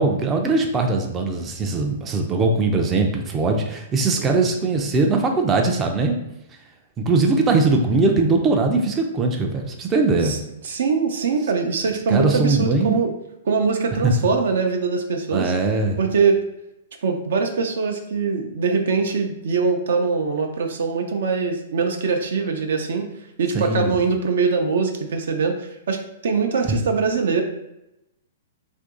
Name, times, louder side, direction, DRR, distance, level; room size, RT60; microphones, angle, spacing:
voice 1, 0.0-6.2 7.0-10.4 12.1-13.0 14.0-14.1 15.3-16.0 23.5-24.0 26.7-26.8, right 3 dB, 20° right, 3 dB, 0.4 m, -20 dB
voice 2, 10.6-13.1 13.5-15.5 16.0-16.4 17.0-23.1 23.4-27.4, right 5 dB, 75° right, 4 dB, 0.5 m, -22 dB
2.8 x 2.6 x 3.6 m, 0.90 s
hypercardioid pair, 145°, 0 cm